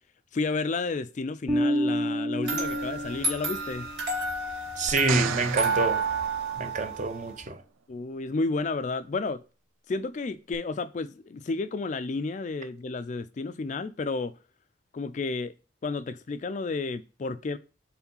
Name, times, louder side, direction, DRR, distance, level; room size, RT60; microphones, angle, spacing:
voice 1, 0.3-3.9 7.9-9.4 9.9-14.3 14.9-15.5 15.8-17.6, left 3 dB, 35° left, 0.3 m, -31 dB
Bass guitar, 1.5-3.9, equal, ahead, 0.8 m, -29 dB
sound 1, 2.4-7.4, right 3 dB, 60° right, 2.2 m, -31 dB
voice 2, 4.8-6.0 6.6-7.6, right 3 dB, 40° right, 0.6 m, -27 dB
sound 2, 4.9-7.2 10.5-10.6, right 9 dB, 85° right, 0.3 m, -35 dB
4.7 x 3.7 x 5.3 m
head